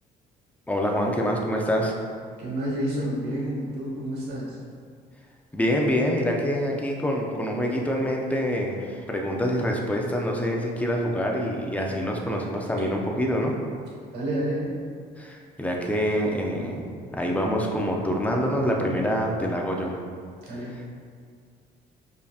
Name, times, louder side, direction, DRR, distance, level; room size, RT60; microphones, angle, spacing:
voice 1, 0.7-2.0 5.5-13.5 15.2-16.9 17.2-20.0, equal, 10° left, 0 dB, 0.5 m, -26 dB
voice 2, 2.4-4.6 14.1-14.8 20.5-20.7, right 1 dB, 80° right, -3 dB, 1.2 m, -29 dB
5.2 x 2.9 x 2.3 m, 2.1 s
cardioid pair, 110°, 17 cm